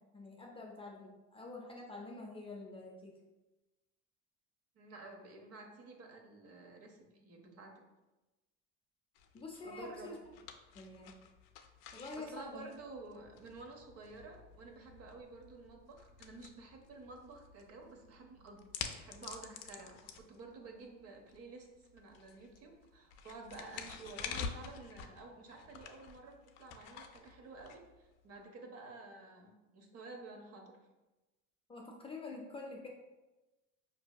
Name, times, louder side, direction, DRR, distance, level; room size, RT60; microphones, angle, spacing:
voice 1, 0.0-3.1 9.3-10.2 10.7-11.1 11.9-12.7 31.7-32.9, left 3 dB, 15° left, -2 dB, 0.4 m, -47 dB
voice 2, 4.8-7.7 9.6-10.1 12.2-30.8, right 3 dB, 45° right, 2 dB, 0.7 m, -51 dB
sound 1, 9.2-28.4, left 7 dB, 70° left, 0.5 m, -49 dB
4.8 x 2.7 x 2.3 m, 1.1 s
supercardioid pair, 115°, 34 cm